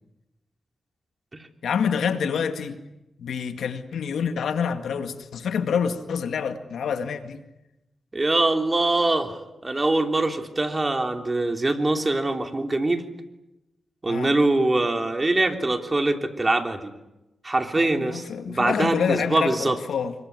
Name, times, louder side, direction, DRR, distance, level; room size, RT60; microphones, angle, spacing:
voice 1, 1.6-2.8 3.2-7.4 14.1-14.3 17.7-20.1, left 6 dB, 85° left, 8 dB, 2.1 m, -27 dB
voice 2, 8.1-13.0 14.0-16.9 17.4-19.8, right 2 dB, 30° right, 5 dB, 3.4 m, -23 dB
25.5 x 23.0 x 9.7 m, 0.95 s
cardioid pair, 60°, 0 cm